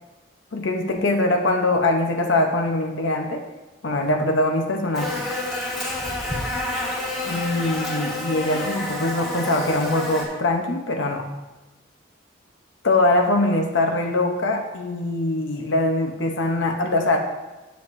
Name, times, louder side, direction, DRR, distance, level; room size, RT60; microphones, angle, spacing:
voice 1, 0.5-3.4 3.8-5.4 7.3-11.3 12.8-17.2, left 2 dB, 70° left, 4 dB, 0.8 m, -22 dB
Buzz, 4.9-10.3, left 2 dB, ahead, 1.5 m, -28 dB
10.0 x 7.4 x 2.6 m, 1.1 s
head